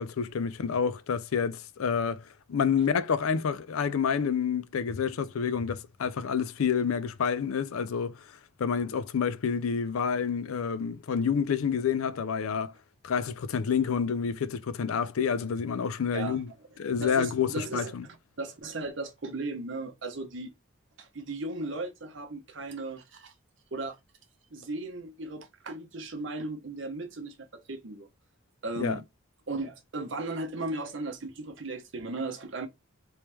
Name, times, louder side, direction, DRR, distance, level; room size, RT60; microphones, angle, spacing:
voice 1, 0.0-2.2 2.5-8.1 8.6-12.7 13.0-16.5 16.8-18.1 28.8-29.0, left 6 dB, 80° left, 0.4 m, -28 dB
voice 2, 17.0-20.5 21.0-23.3 23.7-24.0 24.5-28.1 28.6-29.0 29.5-32.7, right 2 dB, 60° right, 0.8 m, -36 dB
3.1 x 3.1 x 3.3 m
head